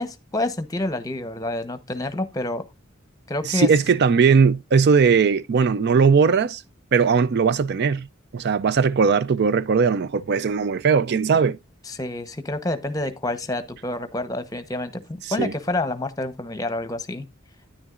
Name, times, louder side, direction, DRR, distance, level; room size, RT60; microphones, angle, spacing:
voice 1, 0.0-2.6 3.3-3.7 11.9-17.3, left 1 dB, 20° left, 0.9 m, -28 dB
voice 2, 3.5-6.6 6.9-8.1 8.3-11.6 15.4-15.5, right 5 dB, 55° right, 0.4 m, -19 dB
9.9 x 9.7 x 2.4 m
head